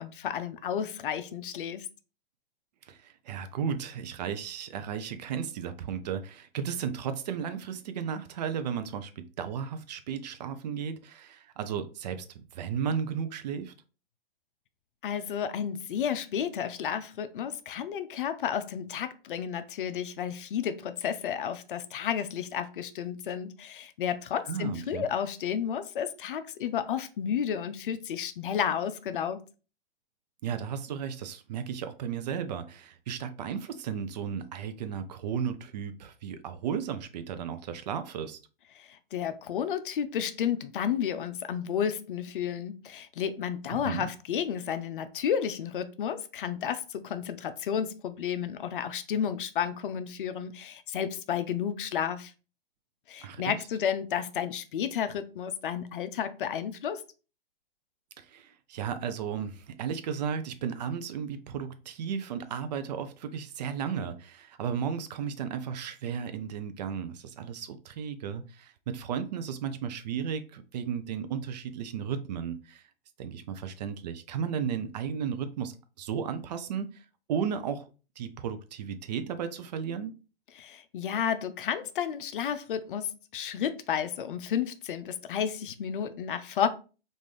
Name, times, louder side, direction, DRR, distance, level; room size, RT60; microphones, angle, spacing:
voice 1, 0.0-1.9 15.0-29.4 38.7-52.3 53.1-57.0 80.6-86.7, left 8 dB, 60° left, 0.5 m, -32 dB
voice 2, 2.9-13.7 24.5-25.1 30.4-38.4 43.7-44.1 53.2-53.6 58.2-72.8 73.2-77.9 78.2-80.1, right 7 dB, 45° right, 0.4 m, -34 dB
3.6 x 2.5 x 3.2 m
hypercardioid pair, 125°, 30 cm